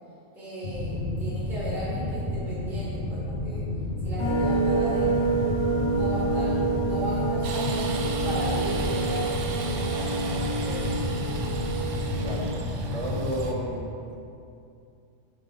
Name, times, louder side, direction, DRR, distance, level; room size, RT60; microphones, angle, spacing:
voice 1, 0.3-3.6 4.0-5.4 5.9-11.0, right 1 dB, ahead, -11 dB, 1.3 m, -36 dB
sound 1, 0.6-13.5, left 2 dB, 90° left, 1.1 m, -31 dB
sound 2, 4.2-12.5, right 3 dB, 30° left, 0.7 m, -28 dB
sound 3, 7.4-13.5, right 4 dB, 85° right, 1.0 m, -37 dB
voice 2, 12.2-12.5 12.9-13.9, right 1 dB, 35° right, -4 dB, 0.6 m, -31 dB
5.1 x 4.4 x 5.0 m, 2.5 s
omnidirectional pair, 1.3 m